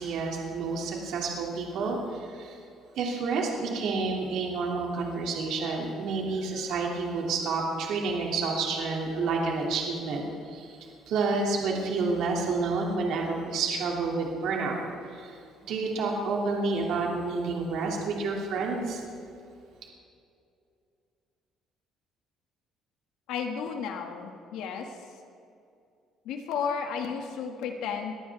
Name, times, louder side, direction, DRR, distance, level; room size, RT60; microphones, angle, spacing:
voice 1, 0.0-2.6 3.0-10.8 11.1-14.8 15.1-19.0, right 4 dB, 70° right, -1 dB, 2.7 m, -29 dB
voice 2, 23.3-24.9 26.3-28.1, left 6 dB, 85° left, 3 dB, 2.0 m, -33 dB
22.0 x 14.5 x 3.6 m, 2.4 s
cardioid pair, 115°, 0 cm